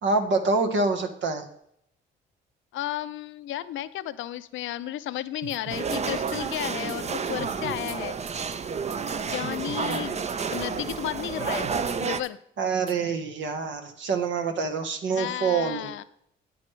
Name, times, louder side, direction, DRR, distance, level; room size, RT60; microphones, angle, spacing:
voice 1, 0.0-1.4 9.8-10.0 12.6-15.9, right 4 dB, 70° right, 5 dB, 1.3 m, -26 dB
voice 2, 2.7-8.2 9.3-11.7 12.0-12.4 15.1-16.0, left 13 dB, 75° left, 14 dB, 0.5 m, -33 dB
sound 1, 5.4-6.0 6.3-8.0 8.3-8.6 8.9-9.0 9.3-10.0 10.3-10.6 10.9-11.0 11.4-12.0 12.2-12.3 12.9-13.0, right 11 dB, 90° right, 0.6 m, -42 dB
sound 2, 5.7-12.2, right 5 dB, 35° right, 0.6 m, -30 dB
9.4 x 9.3 x 3.2 m, 0.71 s
cardioid pair, 90°, 20 cm